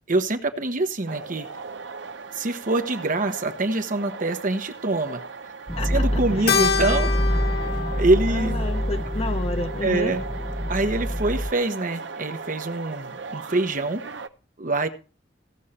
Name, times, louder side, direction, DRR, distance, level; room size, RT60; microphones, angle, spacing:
voice 1, 0.1-1.5 2.3-5.2 5.8-7.1 8.0-8.6 9.8-10.2 10.7-14.0 14.6-14.9, right 2 dB, 45° right, 7 dB, 1.1 m, -25 dB
sound 1, 1.1-14.3, right 4 dB, 75° right, 0.7 m, -38 dB
sound 2, 5.7-11.5, equal, 5° right, 0.5 m, -26 dB
voice 2, 5.8-6.6 8.3-10.2, left 2 dB, 35° left, 7 dB, 1.0 m, -31 dB
Keyboard (musical), 6.5-11.1, left 6 dB, 60° left, 1.1 m, -29 dB
16.5 x 6.4 x 4.3 m, 0.35 s
head